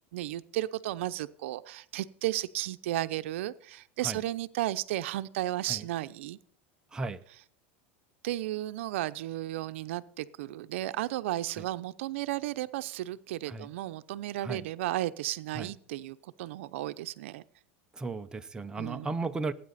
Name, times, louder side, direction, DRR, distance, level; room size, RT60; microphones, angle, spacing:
voice 1, 0.1-6.4 8.2-17.4 18.8-19.1, right 15 dB, 75° right, 0.7 m, -34 dB
voice 2, 6.9-7.2 11.6-11.7 13.5-13.7 14.4-14.7 15.6-15.7 17.9-19.5, right 3 dB, 10° right, 0.7 m, -35 dB
18.0 x 9.1 x 4.2 m
supercardioid pair, 140°, 7 cm